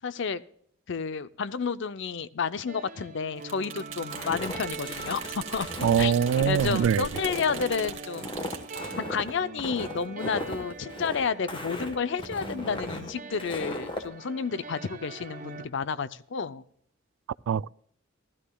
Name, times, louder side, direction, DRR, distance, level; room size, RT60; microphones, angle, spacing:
voice 1, 0.0-0.4 0.9-6.1 6.4-8.3 9.0-16.6, left 5 dB, 65° left, 0.5 m, -31 dB
sound 1, 2.7-15.7, right 3 dB, 40° right, 1.2 m, -42 dB
sound 2, 3.4-9.0, right 7 dB, 75° right, 1.9 m, -40 dB
Walk footsteps, 4.1-14.1, left 1 dB, 25° left, 1.2 m, -37 dB
voice 2, 5.8-7.1 17.5-17.7, right 8 dB, 90° right, 0.3 m, -23 dB
16.0 x 13.0 x 2.3 m
head